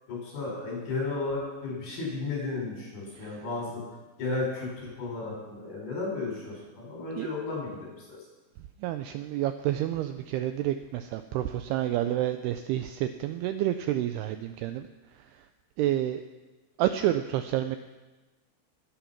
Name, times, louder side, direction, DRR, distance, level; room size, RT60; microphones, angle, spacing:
voice 1, 0.1-3.8 4.2-7.9, left 3 dB, 55° left, -3 dB, 7.5 m, -33 dB
voice 2, 8.8-14.9 15.1-15.5 15.8-16.2 16.8-17.8, right 12 dB, 85° right, 9 dB, 2.3 m, -29 dB
20.5 x 8.9 x 5.9 m, 1.2 s
omnidirectional pair, 5.1 m